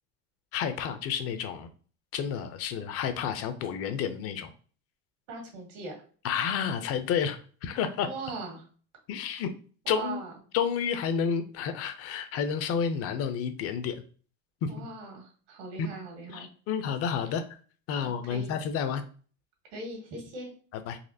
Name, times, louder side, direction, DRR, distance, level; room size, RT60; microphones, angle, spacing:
voice 1, 0.5-1.7 2.1-4.5 6.2-8.1 9.1-9.5 9.9-10.2 10.5-14.0 14.6-14.9 15.8-15.9 16.3-17.4 17.9-19.0 20.7-21.0, left 7 dB, 45° left, 10 dB, 0.5 m, -30 dB
voice 2, 5.3-5.9 8.0-8.7 9.9-10.3 14.7-16.5 18.0-18.5 19.7-20.5, right 3 dB, 80° right, 1 dB, 1.8 m, -40 dB
4.1 x 2.7 x 2.6 m, 0.41 s
supercardioid pair, 130°, 34 cm